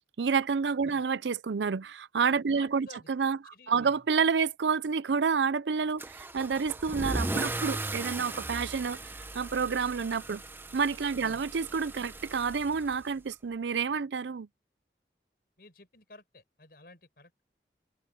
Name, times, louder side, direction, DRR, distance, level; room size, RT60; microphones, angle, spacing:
voice 1, 0.2-9.0 9.3-10.4 10.7-14.5, right 5 dB, 85° right, 0.5 m, -29 dB
voice 2, 2.4-3.1 3.5-4.0 11.2-11.4 15.6-17.5, left 2 dB, 55° left, 6.4 m, -53 dB
Car / Engine starting / Accelerating revving vroom, 6.0-13.3, right 2 dB, 10° right, 0.7 m, -37 dB
head